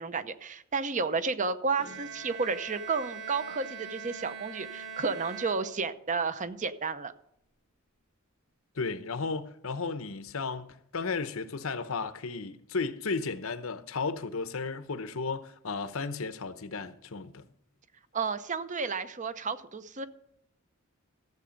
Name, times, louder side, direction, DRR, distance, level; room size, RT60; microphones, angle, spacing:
voice 1, 0.0-7.1 18.1-20.1, right 4 dB, 35° right, 0.8 m, -32 dB
Bowed string instrument, 1.8-6.2, right 6 dB, 65° right, 2.2 m, -42 dB
voice 2, 8.8-17.4, left 4 dB, 75° left, 0.9 m, -34 dB
14.5 x 7.9 x 5.2 m
head